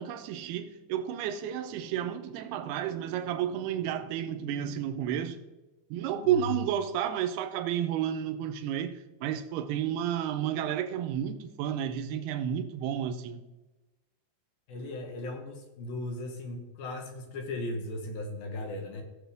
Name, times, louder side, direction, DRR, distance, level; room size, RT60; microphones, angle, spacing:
voice 1, 0.0-5.4 5.9-13.4, right 10 dB, 80° right, 2.7 m, -31 dB
voice 2, 6.2-6.6 14.7-19.0, left 2 dB, 70° left, 2.8 m, -37 dB
17.0 x 7.0 x 3.5 m
omnidirectional pair, 4.8 m